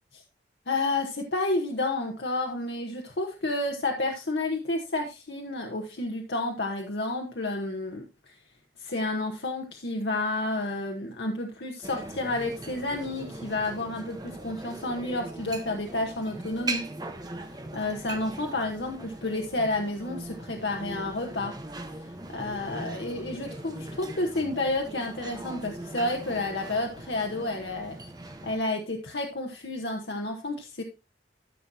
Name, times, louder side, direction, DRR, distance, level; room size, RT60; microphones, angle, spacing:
voice 1, 0.7-8.3 8.8-16.9 17.4-21.5 22.0-28.0 28.4-30.8, left 2 dB, 75° left, 2 dB, 1.1 m, -30 dB
sound 1, 11.8-28.6, right 2 dB, 25° right, 0.9 m, -40 dB
13.5 x 6.2 x 2.7 m, 0.29 s
head